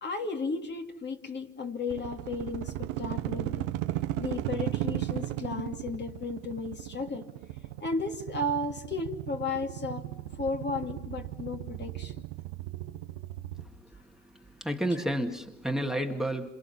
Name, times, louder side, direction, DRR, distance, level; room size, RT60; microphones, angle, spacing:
voice 1, 0.0-3.7 4.2-7.3 7.8-10.1 10.3-12.1 14.9-15.0, left 3 dB, 30° left, 2.5 m, -34 dB
sound 1, 1.9-13.6, right 15 dB, 80° right, 1.2 m, -36 dB
voice 2, 14.6-16.5, right 1 dB, ahead, 2.0 m, -30 dB
27.5 x 27.0 x 5.7 m
supercardioid pair, 80°, 34 cm